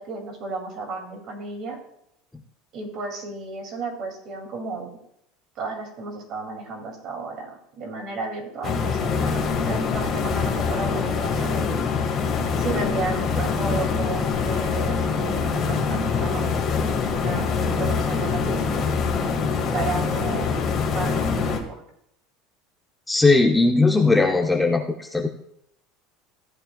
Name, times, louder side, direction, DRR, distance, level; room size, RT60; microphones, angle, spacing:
voice 1, 0.0-1.8 2.7-4.9 5.6-7.5 7.8-11.7 12.6-18.8 19.7-20.5 20.9-21.8, right 4 dB, 40° right, 3 dB, 2.2 m, -33 dB
sound 1, 8.6-21.6, left 5 dB, 30° left, 1.4 m, -24 dB
voice 2, 23.1-25.3, left 3 dB, 5° left, 2 dB, 0.4 m, -19 dB
14.0 x 9.0 x 2.2 m, 0.75 s
cardioid pair, 170°, 0 cm